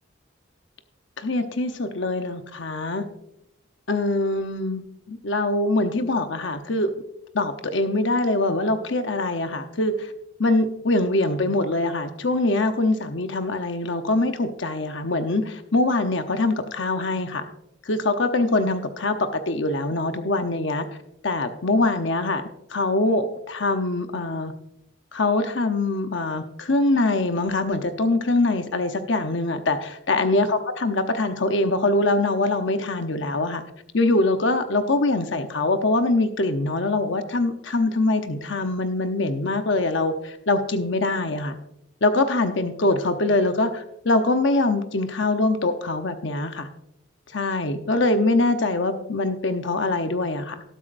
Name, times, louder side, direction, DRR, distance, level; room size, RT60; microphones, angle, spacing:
voice 1, 1.2-3.0 3.9-6.9 7.3-10.1 10.4-17.5 17.8-20.9 21.2-22.4 22.7-24.5 25.1-33.6 33.9-41.6 42.0-46.7 47.3-50.6, left 2 dB, 65° left, 7 dB, 0.9 m, -23 dB
18.5 x 8.1 x 2.6 m, 0.79 s
head